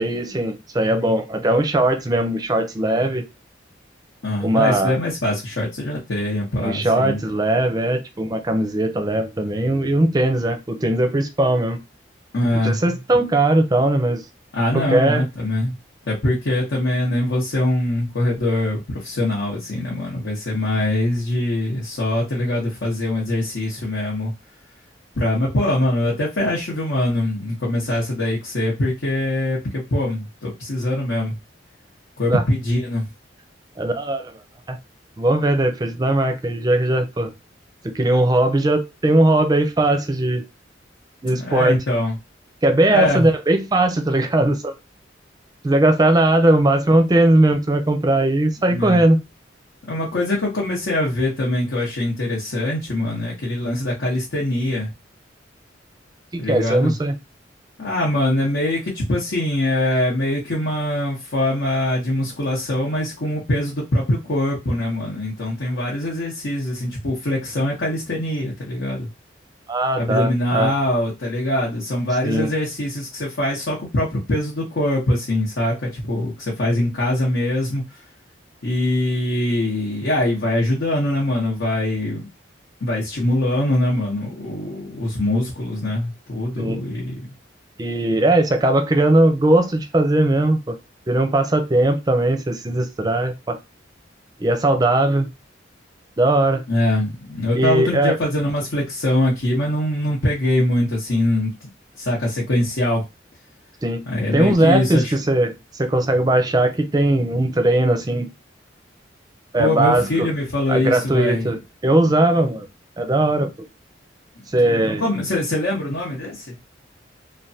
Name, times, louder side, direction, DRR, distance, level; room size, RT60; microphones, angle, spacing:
voice 1, 0.0-3.2 4.4-4.9 6.6-11.8 12.6-14.2 14.9-15.2 32.3-32.4 33.8-34.4 34.7-34.8 35.2-37.3 37.8-40.4 41.2-41.8 42.6-44.8 45.6-49.2 56.3-57.1 69.7-70.7 72.2-72.5 86.6-86.8 87.8-90.8 91.1-93.6 94.4-95.3 96.2-96.6 97.5-98.1 103.8-104.0 104.3-108.3 109.5-110.3 110.7-112.7 113.0-113.5 114.5-115.0, right 1 dB, 20° right, 0.5 m, -19 dB
voice 2, 4.2-7.2 12.3-12.8 14.5-15.8 16.1-24.3 25.2-31.3 32.2-33.1 41.2-42.2 42.9-43.3 48.7-49.0 49.9-54.9 56.4-56.9 57.8-69.1 70.0-77.8 78.6-82.2 82.8-87.2 96.7-101.5 102.0-103.0 104.1-105.1 109.6-111.5 114.6-116.5, left 1 dB, 75° left, 0.9 m, -23 dB
3.2 x 2.2 x 2.7 m
head